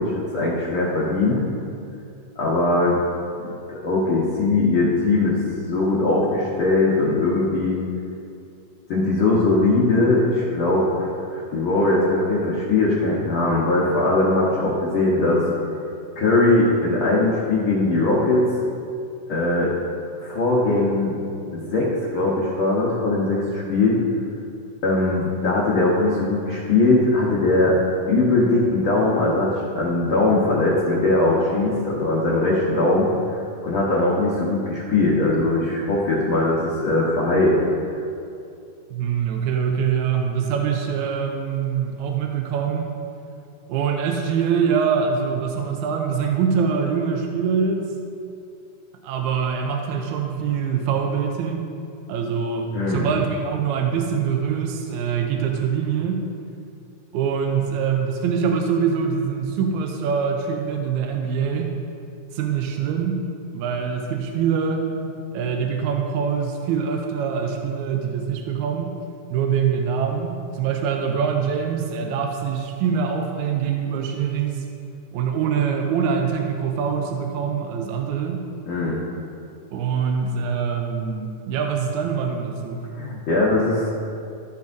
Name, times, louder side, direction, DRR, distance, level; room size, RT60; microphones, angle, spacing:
voice 1, 0.0-1.4 2.4-3.0 3.7-5.4 5.7-7.8 8.9-15.4 16.1-18.4 19.3-19.7 20.2-21.2 21.5-24.0 24.8-27.8 28.1-33.1 33.6-37.6 52.7-53.1 78.7-79.0 83.0-83.9, left 2 dB, 65° left, -6 dB, 1.3 m, -20 dB
voice 2, 38.9-42.9 43.7-47.9 49.0-51.7 52.1-56.3 57.1-61.7 62.3-63.2 63.5-69.0 69.3-74.7 75.1-78.5 79.7-82.9, right 6 dB, 80° right, 2 dB, 1.8 m, -24 dB
15.5 x 5.3 x 2.6 m, 2.5 s
omnidirectional pair, 3.8 m